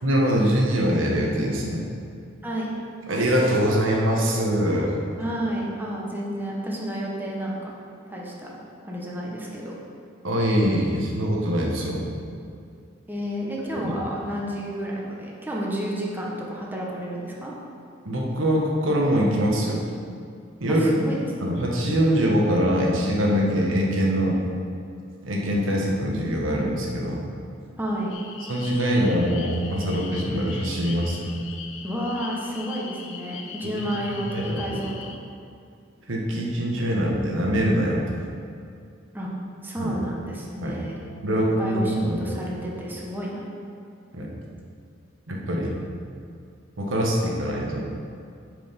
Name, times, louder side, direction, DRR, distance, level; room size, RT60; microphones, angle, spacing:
voice 1, 0.0-1.9 3.1-5.0 10.2-12.0 13.8-13.9 18.0-19.8 20.6-21.0 21.4-24.4 25.2-27.2 28.5-31.3 34.3-34.8 36.1-38.0 39.8-40.0 40.6-40.8 41.2-42.5 44.1-44.3 45.3-45.8 46.8-47.8, equal, 90° right, -2 dB, 1.4 m, -23 dB
voice 2, 5.2-7.8 8.1-8.6 8.8-9.7 13.1-17.5 20.7-21.2 27.8-28.1 31.8-35.1 39.1-39.3 39.6-41.0 41.6-43.4, equal, 10° right, -4 dB, 1.2 m, -31 dB
sound 1, 28.1-35.2, left 6 dB, 75° left, 0.7 m, -40 dB
9.2 x 5.2 x 5.3 m, 2.4 s
head